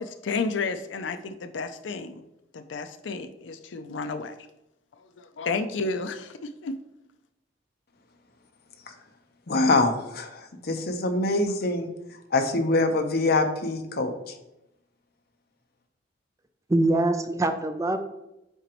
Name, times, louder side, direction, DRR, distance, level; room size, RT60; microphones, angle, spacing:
voice 1, 0.0-2.2 2.5-4.3 5.2-6.8, left 4 dB, 80° left, 10 dB, 0.5 m, -31 dB
voice 2, 9.5-11.9 12.3-14.3, left 2 dB, 60° left, 6 dB, 0.8 m, -24 dB
voice 3, 16.7-18.0, right 2 dB, 15° right, 8 dB, 0.4 m, -23 dB
8.1 x 5.0 x 3.0 m, 0.91 s
head